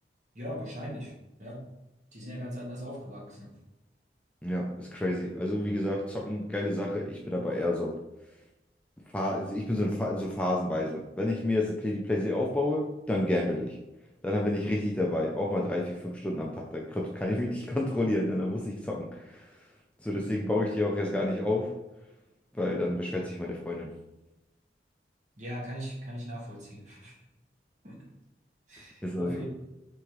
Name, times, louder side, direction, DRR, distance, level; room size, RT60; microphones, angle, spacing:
voice 1, 0.3-1.1 1.4-1.6 2.1-3.5 25.4-27.2 27.8-28.0 28.7-29.4, equal, 40° right, -4 dB, 1.4 m, -39 dB
voice 2, 4.4-8.0 9.1-13.8 14.2-19.7 20.0-21.8 22.5-24.0 29.0-29.4, left 1 dB, 5° left, -2 dB, 0.4 m, -30 dB
3.5 x 3.2 x 4.6 m, 0.97 s
head